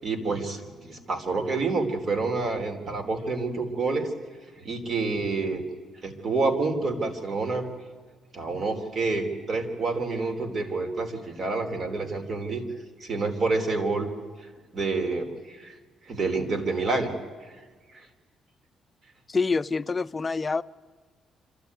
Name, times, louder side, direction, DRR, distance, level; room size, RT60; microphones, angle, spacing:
voice 1, 0.0-4.1 4.6-5.6 6.0-7.7 8.3-12.7 13.0-14.1 14.7-15.7 16.0-17.1 17.9-18.1, right 3 dB, 50° right, 4 dB, 3.3 m, -28 dB
voice 2, 19.3-20.6, left 4 dB, 30° left, 13 dB, 0.6 m, -26 dB
26.5 x 13.5 x 9.5 m, 1.5 s
cardioid pair, 90°, 0 cm